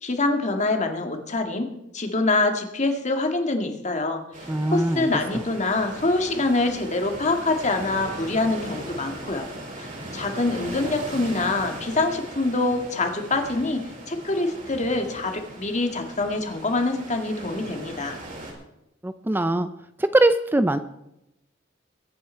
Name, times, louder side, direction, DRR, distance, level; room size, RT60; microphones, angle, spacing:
voice 1, 0.0-4.2 4.7-9.5 9.8-18.2, left 2 dB, 40° left, 5 dB, 1.9 m, -25 dB
sound 1, 4.3-18.5, right 1 dB, 45° right, 5.4 m, -39 dB
voice 2, 4.5-5.1 19.0-19.7 20.0-20.8, right 1 dB, 10° right, 11 dB, 0.4 m, -21 dB
22.0 x 9.1 x 4.5 m, 0.88 s
head